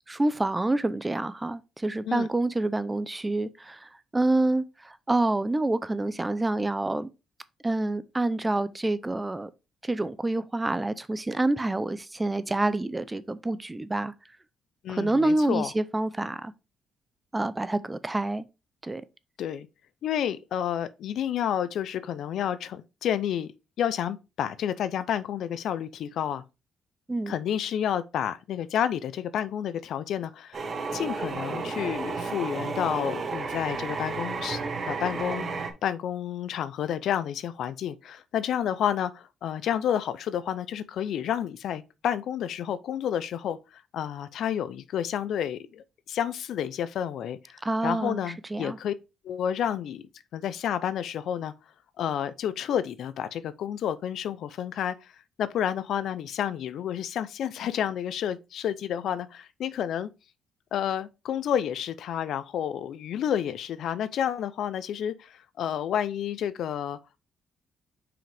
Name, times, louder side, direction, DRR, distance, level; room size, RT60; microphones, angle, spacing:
voice 1, 0.1-7.1 7.6-9.5 9.8-14.1 14.9-16.5 17.3-18.5 18.8-19.0 27.1-27.3 47.6-48.2 48.5-48.8, right 2 dB, 15° right, 0.6 m, -27 dB
voice 2, 14.8-15.7 19.4-19.7 20.0-23.5 23.8-26.4 27.3-30.6 30.9-48.9 49.2-50.0 50.3-51.5 52.0-55.1 55.4-60.1 60.7-67.0, left 9 dB, 75° left, 0.5 m, -30 dB
sound 1, 30.5-35.7, right 4 dB, 45° right, 1.3 m, -32 dB
5.8 x 5.0 x 3.4 m
cardioid pair, 90°, 0 cm